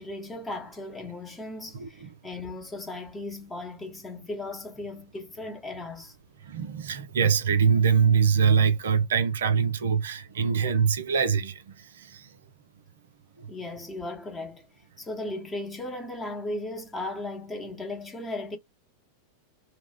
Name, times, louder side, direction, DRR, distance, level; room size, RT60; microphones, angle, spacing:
voice 1, 0.0-6.2 13.5-14.7 15.0-18.6, left 2 dB, 15° left, 0.8 m, -36 dB
voice 2, 1.7-2.1 6.4-12.3 13.4-13.5, right 6 dB, 65° right, 0.5 m, -24 dB
2.4 x 2.0 x 3.5 m
figure-of-eight pair, 90°, 0 cm